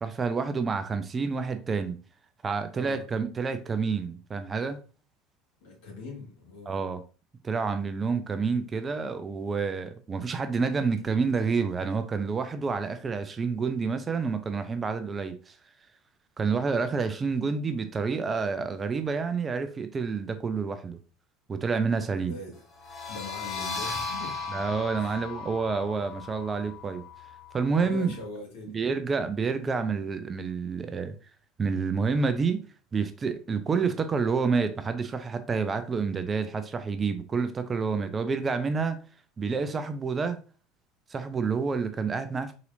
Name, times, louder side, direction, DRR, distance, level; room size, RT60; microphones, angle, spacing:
voice 1, 0.0-2.0 2.4-4.8 6.7-7.0 7.4-15.6 16.4-21.0 21.5-22.4 24.5-27.0 27.5-28.1 28.7-31.1 31.6-32.6 32.9-39.0 39.4-40.4 41.1-42.6, right 5 dB, 25° right, 0.4 m, -28 dB
voice 2, 2.7-3.1 5.6-6.8 22.2-24.5 25.0-25.2 27.7-28.8, left 2 dB, 60° left, 2.1 m, -42 dB
sound 1, 22.8-28.2, left 4 dB, 30° left, 1.1 m, -37 dB
4.1 x 4.0 x 2.5 m
figure-of-eight pair, 70°, 0 cm